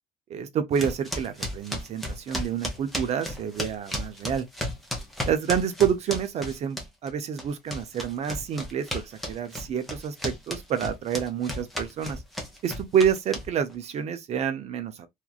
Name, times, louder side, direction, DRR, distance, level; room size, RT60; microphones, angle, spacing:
voice 1, 0.3-4.5 5.3-12.2 12.6-15.1, right 8 dB, 35° right, 0.4 m, -28 dB
sound 1, 0.8-7.1 7.4-13.7, left 1 dB, ahead, 0.7 m, -34 dB
2.9 x 2.4 x 2.3 m
cardioid pair, 155°, 18 cm